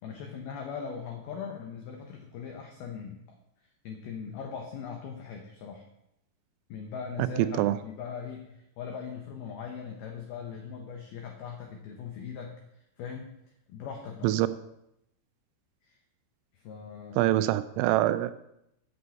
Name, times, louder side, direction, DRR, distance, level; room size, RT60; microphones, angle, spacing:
voice 1, 0.0-3.2 3.8-5.8 6.7-13.3 13.7-14.3 15.8-16.0 16.5-17.3, left 6 dB, 85° left, 2 dB, 2.1 m, -40 dB
voice 2, 17.2-18.3, right 15 dB, 85° right, 13 dB, 3.1 m, -24 dB
8.1 x 6.1 x 7.9 m, 0.81 s
omnidirectional pair, 6.0 m